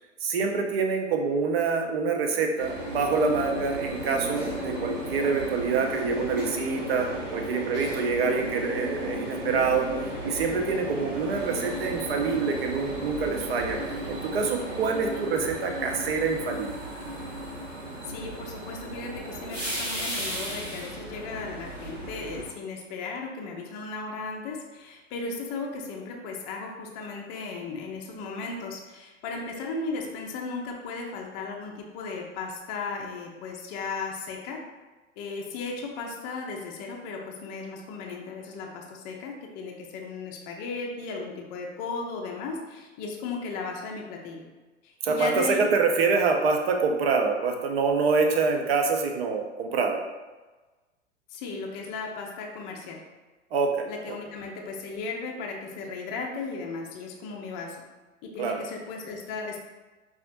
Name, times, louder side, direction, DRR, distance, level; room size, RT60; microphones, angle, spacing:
voice 1, 0.2-9.9 10.2-13.8 14.1-16.7 45.0-50.0 53.5-53.9 58.4-58.6, right 4 dB, 55° right, 3 dB, 0.6 m, -26 dB
sound 1, 2.6-22.5, equal, 85° right, 1.1 m, -35 dB
voice 2, 18.1-34.6 35.2-44.5 44.8-45.7 51.3-53.0 53.9-57.8 58.2-59.6, left 4 dB, 25° left, 0 dB, 0.5 m, -36 dB
5.0 x 2.4 x 2.5 m, 1.2 s
figure-of-eight pair, 90°, 37 cm